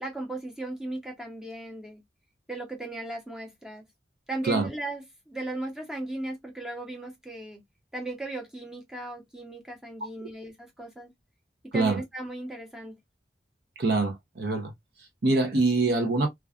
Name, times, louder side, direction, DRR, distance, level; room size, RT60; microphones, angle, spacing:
voice 1, 0.0-2.0 2.5-3.8 4.3-7.6 7.9-11.1 11.7-12.9, right 2 dB, 5° right, 0.7 m, -36 dB
voice 2, 13.8-14.7 15.0-16.3, right 3 dB, 60° right, 0.6 m, -25 dB
2.4 x 2.3 x 2.3 m
head